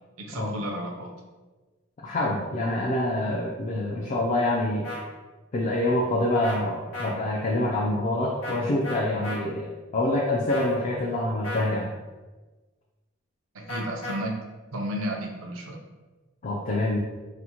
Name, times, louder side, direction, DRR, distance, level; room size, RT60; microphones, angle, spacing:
voice 1, 0.2-1.1 13.5-14.5 14.7-15.8, right 1 dB, 85° right, 1 dB, 0.6 m, -32 dB
voice 2, 2.0-4.9 5.5-11.9 16.4-17.0, left 1 dB, 35° left, -1 dB, 0.3 m, -26 dB
sound 1, 4.8-5.0 6.4-6.6 6.9-7.1 8.4-8.6 8.8-9.4 10.5-10.8 11.4-11.7 13.7-14.2, left 1 dB, 85° left, 0.9 m, -34 dB
4.1 x 2.0 x 2.8 m, 1.2 s
head